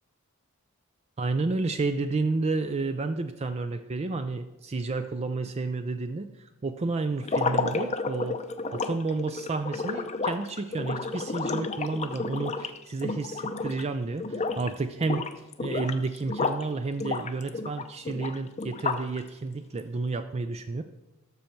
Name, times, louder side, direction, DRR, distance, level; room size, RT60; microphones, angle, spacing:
voice 1, 1.2-8.4 8.7-15.2 15.6-20.8, right 3 dB, 30° right, 8 dB, 0.4 m, -31 dB
sound 1, 7.2-13.9 14.2-14.7 15.0-16.7 17.0-19.2, left 4 dB, 30° left, 0.6 m, -31 dB
12.5 x 6.6 x 4.4 m, 1.0 s
head